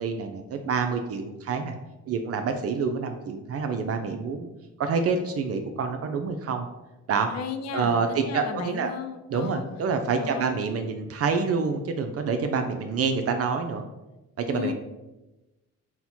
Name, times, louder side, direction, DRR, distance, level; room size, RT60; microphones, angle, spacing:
voice 1, 0.0-1.7 2.1-4.5 4.8-6.7 7.1-7.3 7.7-8.9 9.3-13.8 14.4-14.7, right 5 dB, 50° right, 6 dB, 0.4 m, -27 dB
voice 2, 7.3-9.6 10.2-10.5 14.5-14.7, left 7 dB, 60° left, 9 dB, 0.5 m, -34 dB
4.2 x 2.1 x 4.3 m, 1.0 s
cardioid pair, 90°, 30 cm